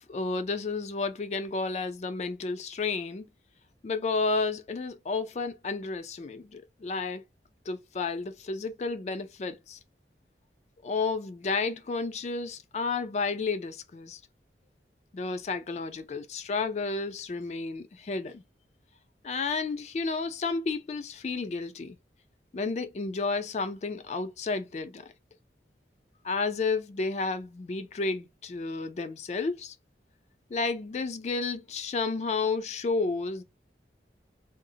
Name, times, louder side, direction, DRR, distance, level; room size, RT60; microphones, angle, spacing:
voice 1, 0.0-3.2 3.8-7.2 7.7-9.8 10.8-14.2 15.1-18.4 19.2-22.0 22.5-25.1 26.2-29.8 30.5-33.4, left 4 dB, 40° left, 0.3 m, -31 dB
3.7 x 2.0 x 2.6 m
head